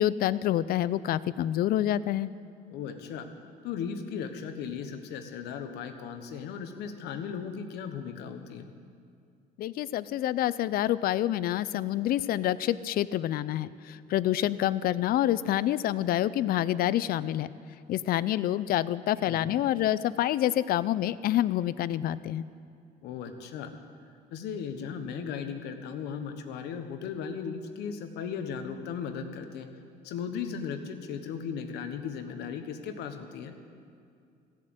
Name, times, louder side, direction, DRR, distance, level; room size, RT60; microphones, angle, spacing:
voice 1, 0.0-2.3 9.6-17.5 17.9-22.4, left 13 dB, 60° left, 17 dB, 0.4 m, -27 dB
voice 2, 2.7-3.3 3.6-8.7 19.3-19.5 23.0-23.7 24.3-29.7 30.0-33.5, left 7 dB, 85° left, 7 dB, 1.1 m, -37 dB
16.0 x 7.5 x 7.9 m, 2.4 s
cardioid pair, 110°, 17 cm